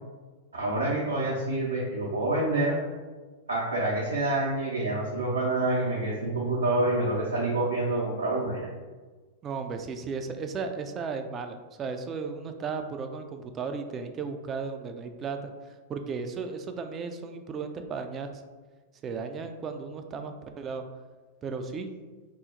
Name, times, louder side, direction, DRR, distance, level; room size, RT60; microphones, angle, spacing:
voice 1, 0.5-2.8 3.5-8.7, right 2 dB, 85° right, -6 dB, 0.6 m, -27 dB
voice 2, 9.4-18.4 19.0-20.8 21.4-21.9, right 5 dB, 30° right, 6 dB, 0.3 m, -35 dB
2.8 x 2.0 x 3.8 m, 1.4 s
hypercardioid pair, 100°, 0 cm